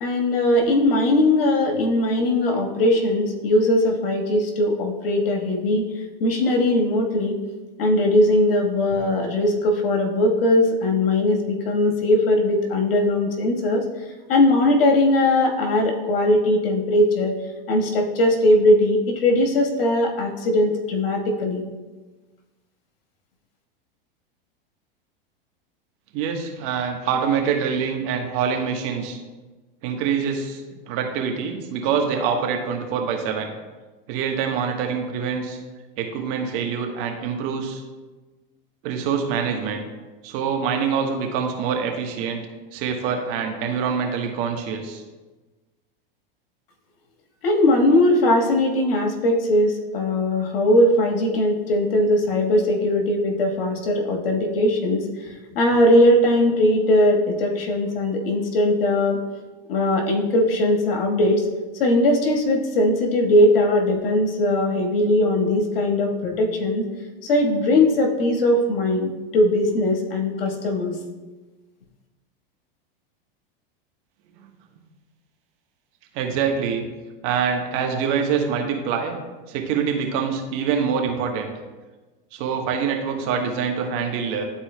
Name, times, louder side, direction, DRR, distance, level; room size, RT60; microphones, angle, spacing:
voice 1, 0.0-7.4 7.8-13.8 14.3-17.4 17.7-21.6 47.4-55.1 55.5-59.2 59.7-61.5 61.8-66.8 67.2-70.9, left 1 dB, 80° left, 1 dB, 1.5 m, -20 dB
voice 2, 26.1-29.2 29.8-33.5 34.1-35.6 36.0-37.8 38.8-39.8 40.2-42.4 42.7-45.0 76.1-76.9 77.2-79.1 79.5-81.5 82.3-84.5, right 6 dB, 50° right, 3 dB, 1.2 m, -25 dB
11.5 x 4.3 x 2.2 m, 1.2 s
hypercardioid pair, 110°, 29 cm